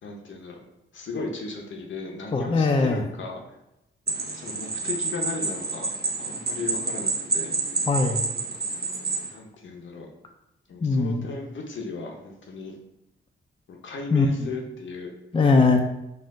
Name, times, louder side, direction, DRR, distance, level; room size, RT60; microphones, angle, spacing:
voice 1, 0.0-0.6 0.9-3.4 4.2-7.5 9.2-10.1 10.7-12.8 13.7-15.1, left 3 dB, 70° left, 1 dB, 0.7 m, -36 dB
voice 2, 2.3-3.0 7.9-8.2 10.8-11.2 14.1-14.5 15.3-15.8, left 3 dB, 25° left, 3 dB, 0.4 m, -21 dB
sound 1, 4.1-9.3, right 3 dB, 50° right, 0.7 m, -28 dB
4.3 x 2.4 x 3.6 m, 0.89 s
cardioid pair, 80°, 21 cm